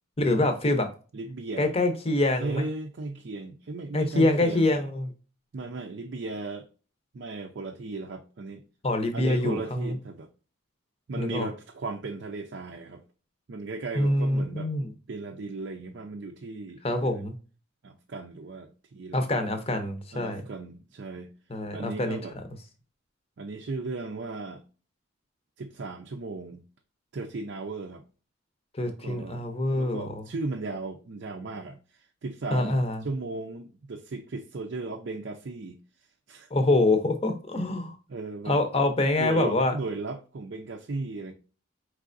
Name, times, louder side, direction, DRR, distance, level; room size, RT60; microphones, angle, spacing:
voice 1, 0.2-0.9 1.6-2.7 3.9-5.1 8.8-10.0 11.2-11.5 14.0-14.9 16.8-17.3 19.1-20.4 21.5-22.2 28.7-30.2 32.5-33.0 36.5-38.0 38.5-39.7, left 2 dB, 30° left, 0.7 m, -25 dB
voice 2, 1.1-1.7 2.4-4.7 5.5-6.7 7.1-8.6 9.1-10.3 11.1-13.0 13.5-14.7 15.1-17.2 17.8-19.2 20.1-21.3 21.7-22.4 23.4-24.6 25.6-26.6 27.1-28.0 28.8-35.8 36.3-36.5 38.1-38.6 39.2-41.3, right 3 dB, 55° right, 0.4 m, -36 dB
4.6 x 3.3 x 2.5 m
head